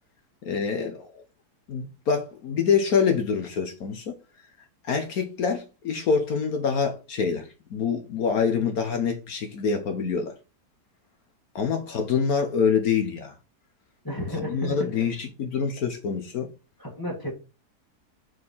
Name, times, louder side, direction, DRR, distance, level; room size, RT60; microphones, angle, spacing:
voice 1, 0.4-1.1 1.7-4.2 4.8-10.3 11.5-13.3 14.3-16.5, left 6 dB, 65° left, 1.4 m, -26 dB
voice 2, 14.0-14.9 16.8-17.3, left 1 dB, 15° left, 1.6 m, -32 dB
4.8 x 4.4 x 5.4 m
omnidirectional pair, 1.7 m